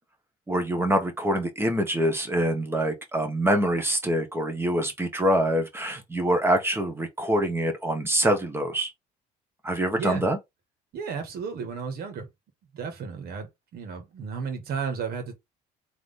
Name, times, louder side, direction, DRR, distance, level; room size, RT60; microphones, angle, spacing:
voice 1, 0.5-8.9 9.6-10.4, right 1 dB, 15° right, 1.4 m, -25 dB
voice 2, 10.9-12.3 12.7-15.3, right 6 dB, 65° right, 1.9 m, -33 dB
3.7 x 3.3 x 3.7 m
cardioid pair, 110°, 17 cm